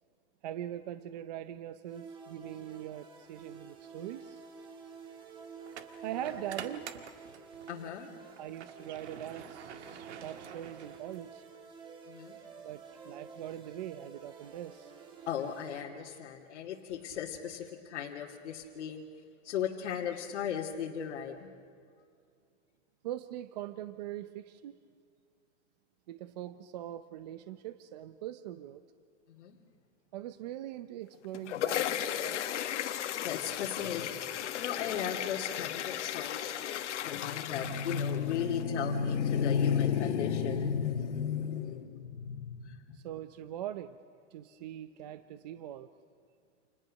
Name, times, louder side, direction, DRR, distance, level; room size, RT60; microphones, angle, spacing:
voice 1, 0.4-4.4 6.0-6.9 8.4-11.4 12.6-14.9 23.0-24.8 26.1-28.8 30.1-32.7 42.9-44.0 44.3-45.9, right 12 dB, 35° right, 12 dB, 0.6 m, -42 dB
sound 1, 1.8-15.8, right 5 dB, 15° right, 1.4 m, -50 dB
sound 2, 3.6-3.8 5.7-7.8 8.3-11.5, right 8 dB, 70° right, 2.0 m, -47 dB
voice 2, 7.7-8.1 12.1-12.4 15.3-19.0 19.4-21.5 29.3-29.6 33.2-43.0, left 7 dB, 75° left, -3 dB, 2.7 m, -34 dB
sound 3, 31.1-38.6, left 11 dB, 90° left, 1.7 m, -36 dB
30.0 x 28.5 x 6.5 m, 2.3 s
supercardioid pair, 180°, 35 cm